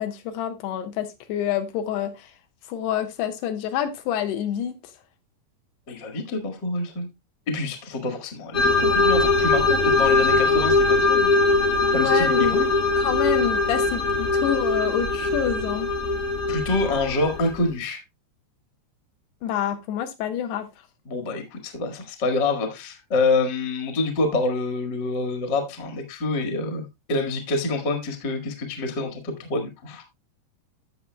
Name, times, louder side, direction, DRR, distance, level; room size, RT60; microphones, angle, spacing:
voice 1, 0.0-2.3 2.7-4.8 11.9-12.6 13.0-15.9 19.4-20.7, left 9 dB, 80° left, 3.1 m, -27 dB
voice 2, 5.9-7.1 7.5-11.3 11.9-12.7 16.5-18.0 21.1-30.0, left 2 dB, 45° left, 1.4 m, -27 dB
sound 1, 8.5-17.6, left 3 dB, 60° left, 1.0 m, -21 dB
15.5 x 6.1 x 2.2 m
omnidirectional pair, 4.7 m